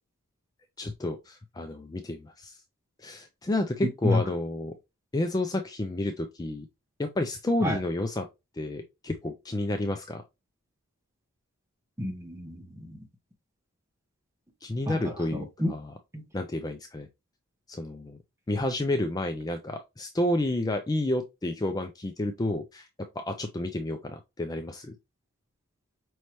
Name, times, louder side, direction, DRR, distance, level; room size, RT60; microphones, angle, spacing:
voice 1, 0.8-2.6 3.0-4.7 5.1-6.7 7.0-8.3 8.5-10.2 14.6-15.9 16.3-17.1 17.7-18.2 18.5-22.9 23.1-24.9, left 1 dB, 15° left, 0.4 m, -30 dB
voice 2, 12.0-13.0 14.9-15.7 16.1-16.2, left 2 dB, 15° right, 1.0 m, -30 dB
5.4 x 3.2 x 2.9 m
head